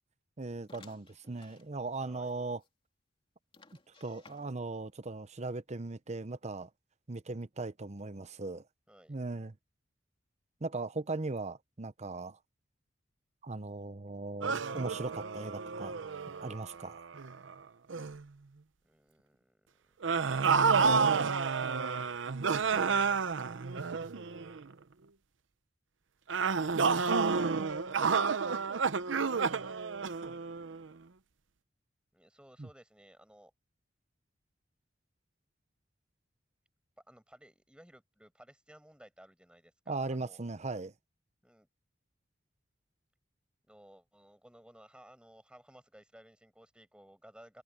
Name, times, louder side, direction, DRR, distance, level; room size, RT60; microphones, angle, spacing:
voice 1, 0.4-2.6 4.0-6.7 7.1-8.6 9.1-9.6 10.6-12.4 13.4-16.0 16.4-17.0 32.6-32.7 39.9-40.9, right 3 dB, 40° right, 0.8 m, -38 dB
sound 1, 0.7-1.7 2.2-2.3 2.6-2.7 3.5-4.8, left 4 dB, 30° left, 2.8 m, -58 dB
voice 2, 2.0-2.3 8.9-9.2 18.8-19.9 32.1-33.5 37.1-40.4 41.4-41.7 43.7-47.6, right 1 dB, 5° right, 5.4 m, -58 dB
sound 2, 14.4-17.5 17.9-18.2 20.0-24.6 26.3-30.9, right 5 dB, 85° right, 0.7 m, -30 dB
open air
head